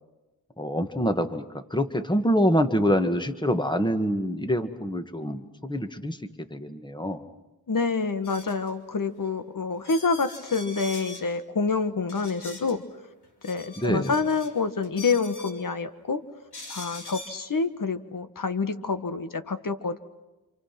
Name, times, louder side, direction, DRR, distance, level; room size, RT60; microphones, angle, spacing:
voice 1, 0.6-7.2 13.8-14.1, equal, 10° left, 8 dB, 1.8 m, -26 dB
voice 2, 7.7-12.8 13.4-16.2 16.7-20.0, left 4 dB, 55° left, 10 dB, 1.6 m, -27 dB
sound 1, 8.2-8.7 9.3-9.4 9.8-11.3 12.1-12.8 13.2-14.5 14.8-15.6 16.5-17.4, left 2 dB, 80° left, 3.9 m, -42 dB
28.0 x 27.5 x 6.0 m, 1.0 s
cardioid pair, 60°, 38 cm